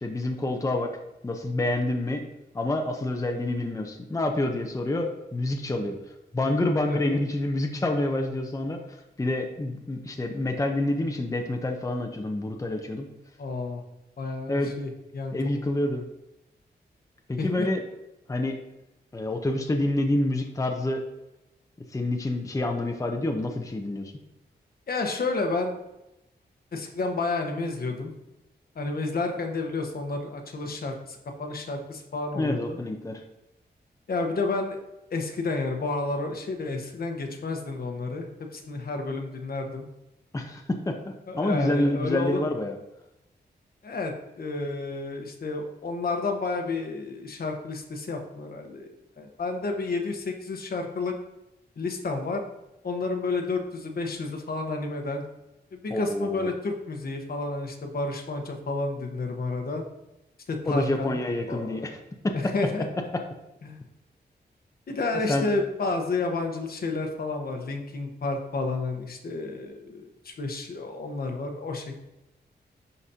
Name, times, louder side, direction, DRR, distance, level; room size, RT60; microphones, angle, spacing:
voice 1, 0.0-1.0 1.2-2.2 2.5-6.0 6.3-8.8 9.2-13.1 14.5-14.7 15.3-16.0 17.3-17.8 18.3-18.6 19.1-21.0 21.9-24.1 32.3-33.2 40.3-40.9 41.3-42.8 55.9-56.5 60.7-61.9 62.2-62.5 65.3-65.5, left 1 dB, 20° left, 3 dB, 0.7 m, -27 dB
voice 2, 6.9-7.2 13.4-13.8 14.2-15.3 17.4-17.7 24.9-25.8 26.7-28.1 28.7-32.8 34.1-34.8 35.1-39.9 41.3-42.4 43.8-51.1 51.8-52.4 52.8-55.2 55.7-59.8 60.5-61.2 61.5-61.8 62.3-62.9 63.6-63.8 64.9-72.0, left 3 dB, 60° left, 3 dB, 1.1 m, -31 dB
11.0 x 4.0 x 2.8 m, 0.91 s
wide cardioid pair, 105°, 18 cm